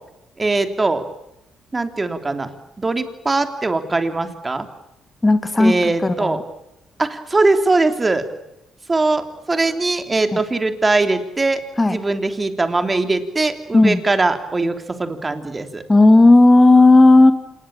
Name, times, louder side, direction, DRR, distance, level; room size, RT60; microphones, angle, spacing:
voice 1, 0.4-1.0 1.7-4.7 5.6-6.4 7.0-8.2 8.9-15.8, right 3 dB, 25° right, 8 dB, 3.4 m, -21 dB
voice 2, 5.2-6.4 10.3-10.4 11.8-12.0 13.7-14.0 15.9-17.3, left 2 dB, 15° left, 9 dB, 2.4 m, -12 dB
27.0 x 20.5 x 8.9 m, 0.86 s
cardioid pair, 90°, 0 cm